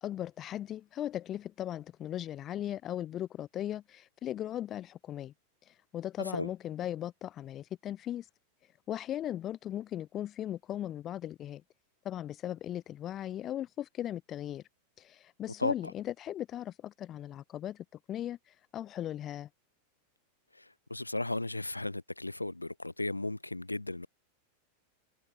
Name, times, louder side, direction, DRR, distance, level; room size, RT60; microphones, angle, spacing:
voice 1, 0.0-5.3 5.6-8.3 8.9-11.6 12.0-14.6 15.0-19.5, left 11 dB, 30° left, 0.9 m, -38 dB
voice 2, 20.5-24.1, left 2 dB, 85° left, 5.3 m, -35 dB
figure-of-eight pair, 90°, 0 cm